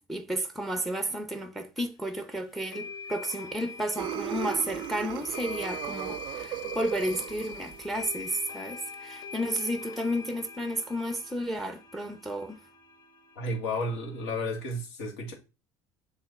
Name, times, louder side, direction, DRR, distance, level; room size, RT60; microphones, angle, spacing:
voice 1, 0.0-12.6, equal, ahead, 0.6 m, -32 dB
sound 1, 1.8-1.9 2.7-14.3, left 5 dB, 50° left, 0.8 m, -43 dB
sound 2, 4.0-8.2, right 15 dB, 60° right, 0.4 m, -37 dB
voice 2, 13.4-15.3, left 1 dB, 85° left, 1.9 m, -32 dB
7.4 x 3.2 x 4.2 m
supercardioid pair, 115°, 9 cm